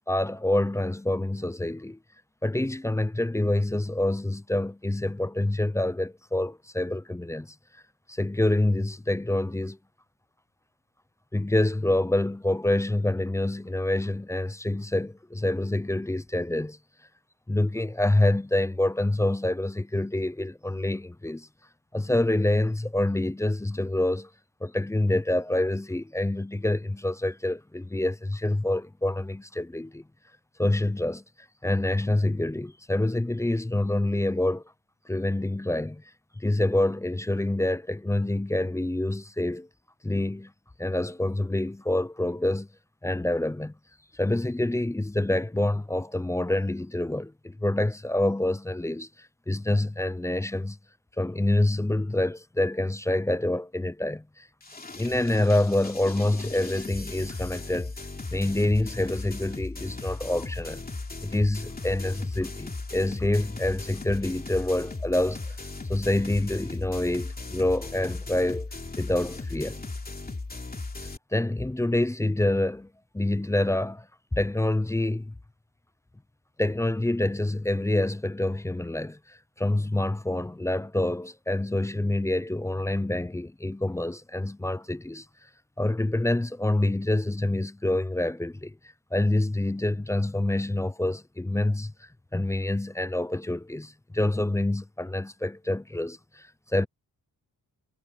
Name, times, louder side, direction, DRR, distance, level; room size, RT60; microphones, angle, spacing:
voice 1, 0.1-2.0 2.4-7.6 8.1-9.8 11.3-16.8 17.5-21.5 21.9-24.3 24.6-30.0 30.6-31.2 31.6-34.6 35.1-36.0 36.4-39.7 40.0-40.5 40.8-42.7 43.0-43.7 44.1-50.8 51.2-54.5 55.0-57.9 58.3-60.8 61.2-65.6 65.9-68.7 69.0-69.8 71.0-72.9 73.1-75.3 76.6-85.3 85.8-88.8 89.1-91.9 92.3-96.9, left 1 dB, 10° left, 0.4 m, -27 dB
sound 1, 54.6-71.2, left 3 dB, 25° left, 2.9 m, -37 dB
wide cardioid pair, 150°, 37 cm